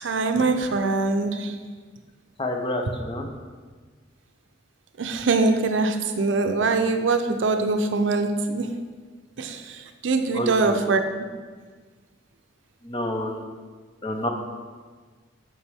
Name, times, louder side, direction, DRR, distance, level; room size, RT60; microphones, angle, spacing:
voice 1, 0.0-1.5 5.0-8.8 9.4-9.6 10.0-11.0, right 3 dB, 80° right, 7 dB, 0.5 m, -23 dB
voice 2, 2.4-3.3 10.3-10.8 12.8-13.4 14.0-14.3, left 1 dB, 25° left, 3 dB, 0.6 m, -28 dB
7.1 x 4.6 x 3.4 m, 1.5 s
head